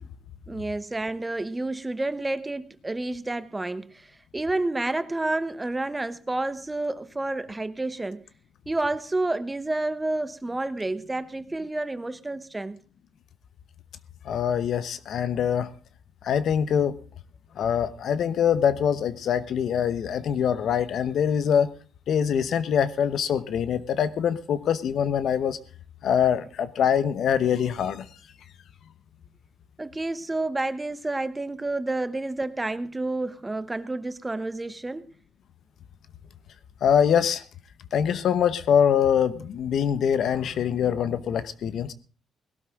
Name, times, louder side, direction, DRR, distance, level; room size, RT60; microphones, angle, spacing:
voice 1, 0.5-8.2 8.7-12.8 29.8-35.1, right 2 dB, 15° right, 1.0 m, -30 dB
voice 2, 14.2-15.7 16.2-17.0 17.6-21.7 22.1-25.6 26.0-28.1 36.8-37.4 37.9-41.9, left 8 dB, 65° left, 0.9 m, -24 dB
18.0 x 12.5 x 3.7 m
cardioid pair, 90°, 0 cm